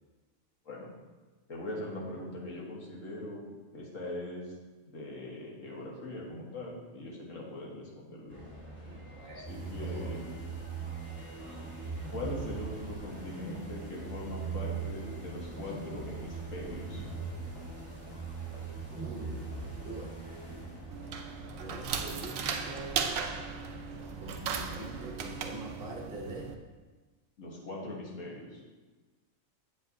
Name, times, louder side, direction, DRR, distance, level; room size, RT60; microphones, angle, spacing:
voice 1, 1.5-3.4 3.7-4.6 4.8-8.5 9.4-10.2 12.1-17.0 27.4-28.6, left 2 dB, 70° left, -3 dB, 1.8 m, -41 dB
sound 1, 8.3-25.4, right 1 dB, 10° left, 2.6 m, -48 dB
voice 2, 8.9-10.2 18.9-19.6 19.8-20.2 21.6-23.1 24.2-26.5, right 1 dB, 45° right, -1 dB, 1.2 m, -44 dB
sound 2, 9.4-21.2, right 5 dB, 10° right, 1.3 m, -41 dB
sound 3, 20.9-26.5, right 6 dB, 75° right, 1.0 m, -37 dB
8.1 x 7.5 x 2.7 m, 1.3 s
omnidirectional pair, 1.4 m